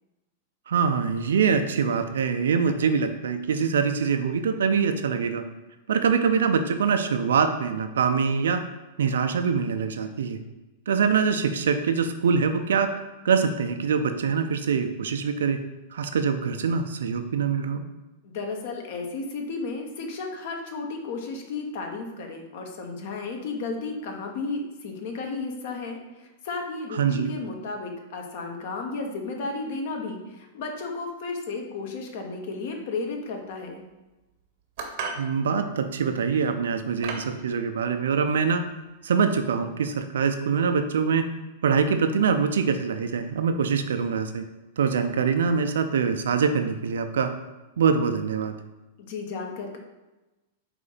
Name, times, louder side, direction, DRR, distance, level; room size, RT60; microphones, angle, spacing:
voice 1, 0.7-5.4 5.9-8.6 9.0-10.4 10.9-12.9 13.2-15.6 15.9-17.8 26.9-27.3 35.2-38.7 39.0-41.3 41.6-44.4 44.8-47.3 47.8-48.6, right 6 dB, 75° right, 8 dB, 0.4 m, -24 dB
voice 2, 18.2-33.8 49.0-49.8, left 3 dB, 60° left, 3 dB, 0.8 m, -33 dB
sound 1, 34.8-35.3 36.2-36.4 37.0-37.3, right 4 dB, 55° right, 0.7 m, -33 dB
4.2 x 2.7 x 4.0 m, 1.1 s
hypercardioid pair, 105°, 0 cm